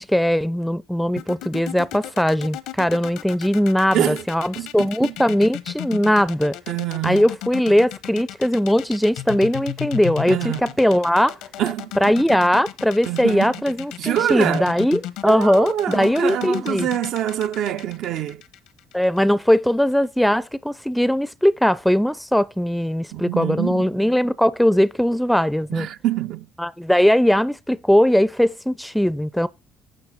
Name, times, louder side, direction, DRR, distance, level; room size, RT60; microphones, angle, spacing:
voice 1, 0.0-6.6 7.0-11.3 12.0-16.9 18.9-25.9 26.6-29.5, equal, 5° left, 0.4 m, -20 dB
sound 1, 1.2-19.3, left 13 dB, 85° left, 0.9 m, -34 dB
voice 2, 3.9-4.2 4.6-5.1 6.7-7.3 10.3-10.6 11.6-12.0 13.1-13.6 14.0-14.7 15.3-18.4 23.1-23.9 25.7-26.5, right 11 dB, 70° right, 0.5 m, -25 dB
10.5 x 6.3 x 4.0 m
supercardioid pair, 85°, 0 cm